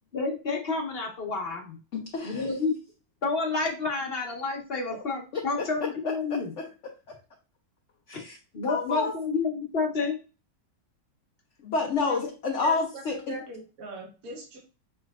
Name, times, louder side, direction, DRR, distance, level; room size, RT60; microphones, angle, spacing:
voice 1, 0.1-1.8 2.2-2.7 3.2-6.5 8.1-8.2 8.5-10.2, left 4 dB, 40° left, 1 dB, 1.1 m, -29 dB
voice 2, 1.9-2.4 5.6-5.7 6.0-6.9 8.1-8.4 8.7-9.1 11.6-13.4, left 4 dB, 65° left, 2 dB, 0.7 m, -29 dB
voice 3, 12.6-14.6, right 3 dB, 55° right, -1 dB, 1.6 m, -40 dB
6.3 x 3.2 x 2.4 m, 0.33 s
omnidirectional pair, 1.9 m